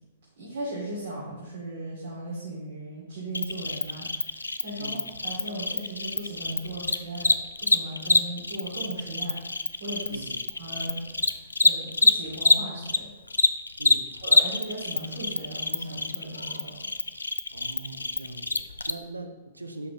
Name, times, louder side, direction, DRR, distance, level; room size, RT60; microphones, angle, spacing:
voice 1, 0.4-7.3 7.6-9.4 9.8-10.3 10.6-11.3 11.6-13.1 14.2-16.9, right 1 dB, 65° right, -7 dB, 2.5 m, -37 dB
Cricket, 3.3-13.0 13.3-18.9, left 3 dB, 85° left, 0.4 m, -25 dB
voice 2, 10.1-10.4 13.8-14.1 17.5-19.9, right 2 dB, 90° right, 7 dB, 0.7 m, -41 dB
10.5 x 4.2 x 3.2 m, 1.2 s
figure-of-eight pair, 110°, 0 cm